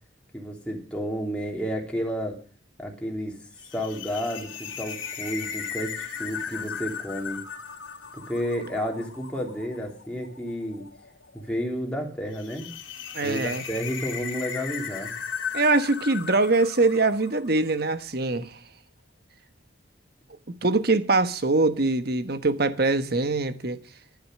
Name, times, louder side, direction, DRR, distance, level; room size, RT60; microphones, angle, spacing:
voice 1, 0.3-2.4 2.8-3.3 3.7-7.4 8.1-10.8 11.3-12.7 13.2-15.1, equal, 5° left, 3.1 m, -31 dB
sound 1, 3.6-17.9, left 7 dB, 80° left, 2.8 m, -37 dB
voice 2, 13.1-13.6 15.5-18.6 20.5-23.8, right 3 dB, 50° right, 1.2 m, -23 dB
11.5 x 10.5 x 7.7 m
head